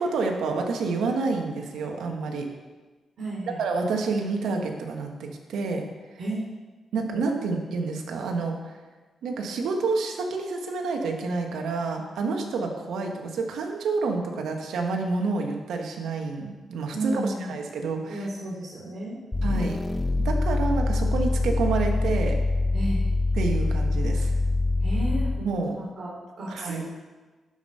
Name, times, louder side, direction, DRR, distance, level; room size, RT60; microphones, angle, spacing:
voice 1, 0.0-2.5 3.6-5.9 6.9-8.7 9.2-17.2 17.5-18.3 19.4-19.8 20.2-22.4 23.4-24.3 25.4-25.8 26.5-26.8, right 4 dB, 90° right, 2 dB, 1.3 m, -28 dB
voice 2, 3.2-3.6 6.2-6.4 16.9-17.5 18.1-19.2 22.7-23.0 24.8-26.8, right 1 dB, 65° right, -7 dB, 3.2 m, -32 dB
sound 1, 19.3-25.5, left 2 dB, 15° left, 0.7 m, -24 dB
12.0 x 5.3 x 5.5 m, 1.3 s
cardioid pair, 105°, 0 cm